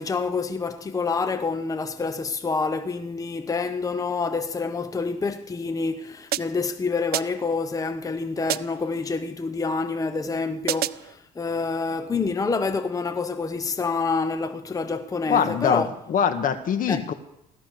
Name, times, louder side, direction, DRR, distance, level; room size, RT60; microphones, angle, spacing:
voice 1, 0.0-15.9 16.9-17.1, left 4 dB, 20° left, 0.9 m, -27 dB
sound 1, 6.3-6.7 7.1-7.6 8.5-8.9 10.7-11.2, right 14 dB, 65° right, 0.5 m, -30 dB
voice 2, 15.3-17.1, left 7 dB, 55° left, 1.7 m, -23 dB
17.0 x 13.0 x 6.7 m
cardioid pair, 110°, 17 cm